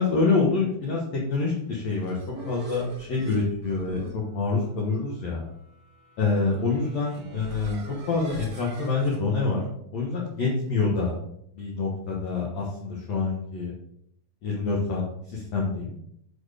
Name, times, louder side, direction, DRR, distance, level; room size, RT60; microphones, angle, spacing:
voice 1, 0.0-2.1 2.4-5.4 6.2-7.8 8.1-9.6 9.9-11.2 11.5-13.7 14.4-15.0 15.3-16.0, left 4 dB, 70° left, -4 dB, 1.6 m, -26 dB
sound 1, 1.7-9.2, right 1 dB, 60° right, 1.6 m, -44 dB
7.0 x 4.4 x 5.0 m, 0.71 s
omnidirectional pair, 5.1 m